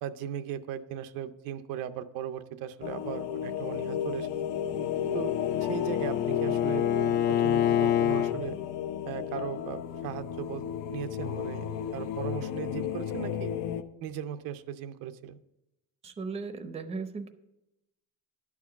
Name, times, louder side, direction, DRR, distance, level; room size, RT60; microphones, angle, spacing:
voice 1, 0.0-4.3 5.1-5.3 5.6-8.6 9.1-10.6 10.9-13.5 14.0-15.4, right 9 dB, 80° right, 9 dB, 0.7 m, -38 dB
sound 1, 2.8-13.8, left 9 dB, 70° left, 0.7 m, -33 dB
Bowed string instrument, 4.6-8.4, left 11 dB, 35° left, 0.4 m, -28 dB
voice 2, 16.0-17.3, right 4 dB, 20° right, 9 dB, 0.6 m, -36 dB
11.0 x 4.8 x 7.0 m, 0.90 s
cardioid pair, 150°, 33 cm